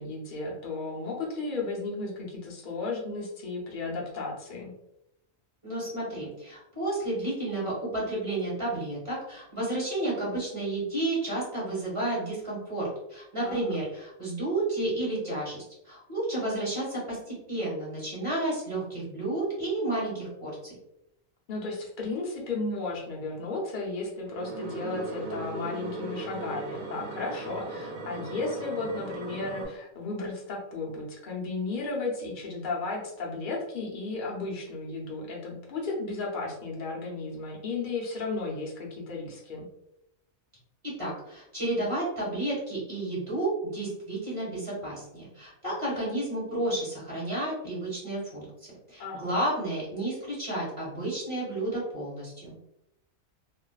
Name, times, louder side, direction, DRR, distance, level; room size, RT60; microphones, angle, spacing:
voice 1, 0.0-4.7 13.4-13.7 21.5-39.7 49.0-49.3, left 3 dB, 50° left, -2 dB, 0.7 m, -34 dB
voice 2, 5.6-20.7 40.8-48.4 48.9-52.5, right 1 dB, 25° right, -7 dB, 1.2 m, -31 dB
sound 1, 24.3-29.7, right 2 dB, 75° right, 1.0 m, -37 dB
2.6 x 2.3 x 2.3 m, 0.84 s
omnidirectional pair, 1.4 m